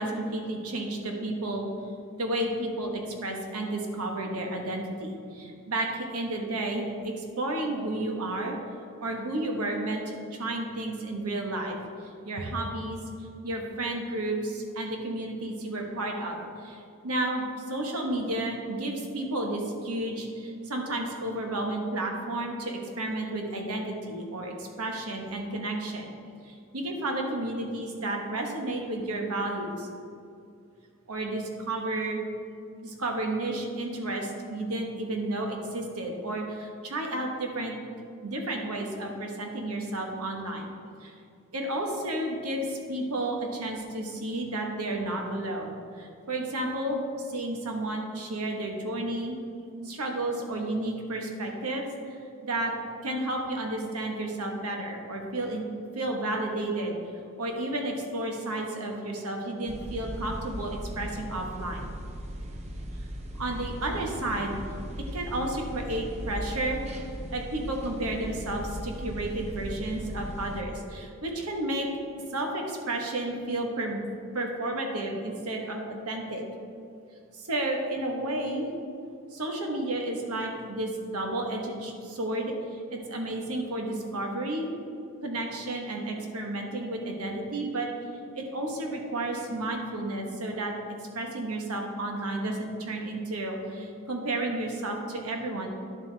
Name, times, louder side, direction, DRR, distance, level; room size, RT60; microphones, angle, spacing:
voice 1, 0.0-1.7 2.2-8.6 9.0-11.8 12.2-13.0 13.4-26.1 26.4-29.9 31.1-32.2 32.8-37.8 38.2-40.7 41.0-41.1 41.5-49.4 49.8-52.7 53.0-55.6 55.9-56.9 57.4-61.9 63.4-64.6 65.1-66.8 67.3-71.9 72.3-74.0 74.3-76.4 77.3-78.7 79.3-84.7 85.2-87.9 88.3-90.7 91.1-95.7, right 1 dB, 90° right, 2 dB, 1.3 m, -32 dB
sound 1, 59.7-70.6, equal, 30° right, 0.7 m, -38 dB
10.5 x 7.4 x 3.4 m, 2.5 s
head